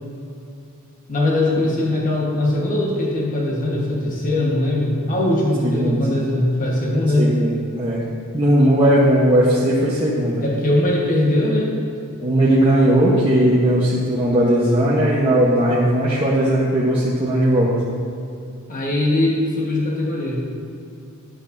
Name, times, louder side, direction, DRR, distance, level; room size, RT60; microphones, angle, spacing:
voice 1, 1.1-7.4 10.4-11.7 18.7-20.5, left 1 dB, 40° left, -3 dB, 1.3 m, -20 dB
voice 2, 5.6-6.0 7.2-8.0 8.3-10.4 12.2-17.7, right 1 dB, 25° right, -8 dB, 1.0 m, -17 dB
11.5 x 7.9 x 2.6 m, 2.6 s
head